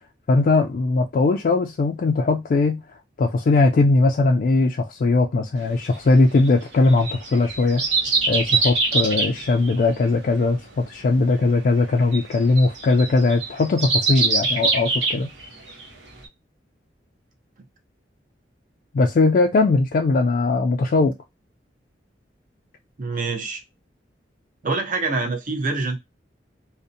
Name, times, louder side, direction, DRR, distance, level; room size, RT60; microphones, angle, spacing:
voice 1, 0.3-2.8 3.2-7.8 8.3-15.3 18.9-21.1, left 3 dB, 50° left, 0.3 m, -19 dB
sound 1, 5.8-15.8 16.2-16.3, right 3 dB, 85° right, 0.8 m, -24 dB
voice 2, 23.0-23.6 24.6-26.0, right 3 dB, 45° right, 0.6 m, -25 dB
2.6 x 2.1 x 2.6 m
head